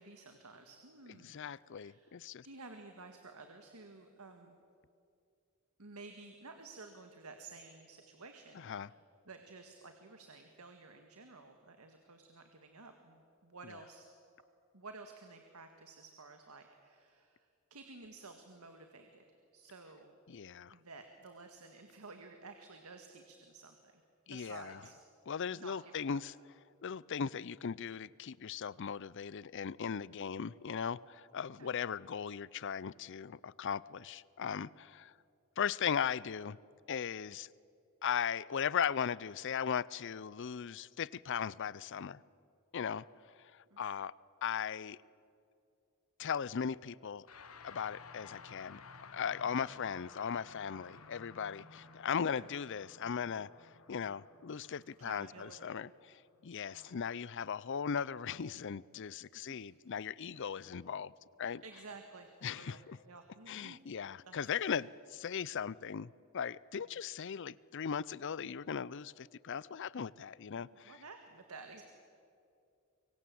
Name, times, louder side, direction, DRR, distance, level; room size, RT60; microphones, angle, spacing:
voice 1, 0.0-1.4 1.7-4.6 5.8-9.0 9.3-14.1 14.7-17.5 17.7-19.2 19.5-20.1 20.7-23.8 24.3-25.0 25.5-26.2 31.6-31.8 43.7-43.8 51.6-51.7 52.4-52.5 55.0-55.7 56.6-57.2 59.3-59.6 60.3-60.5 61.4-62.8 63.0-63.8 64.2-64.4 70.2-71.8, right 3 dB, 85° right, 1.8 m, -53 dB
voice 2, 1.2-2.5 8.5-8.9 13.6-13.8 20.3-20.7 24.3-24.8 25.3-26.3 26.8-35.1 35.6-36.6 36.9-37.5 38.0-42.2 42.7-43.0 43.4-44.1 44.4-45.0 46.2-47.3 47.6-48.8 49.1-61.1 61.4-61.6 62.4-63.0 63.5-71.0, left 7 dB, 55° left, 0.5 m, -38 dB
sound 1, 47.3-56.7, left 5 dB, 75° left, 1.5 m, -55 dB
25.0 x 23.5 x 7.7 m
head